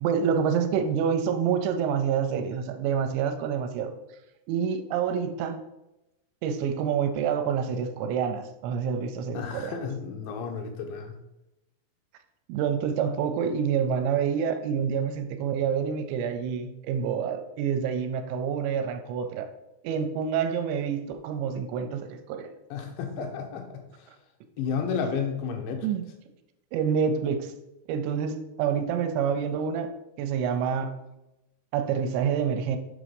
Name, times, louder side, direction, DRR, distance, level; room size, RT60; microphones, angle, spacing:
voice 1, 0.0-4.0 4.5-5.6 6.4-9.8 12.5-19.5 19.8-22.5 25.8-26.0 26.7-27.5 27.9-29.9 30.2-31.0 31.7-32.8, right 7 dB, 85° right, 8 dB, 2.8 m, -27 dB
voice 2, 9.3-11.1 22.7-24.1 24.6-25.9, left 6 dB, 90° left, 4 dB, 3.2 m, -32 dB
7.4 x 3.7 x 5.3 m, 0.93 s
omnidirectional pair, 5.1 m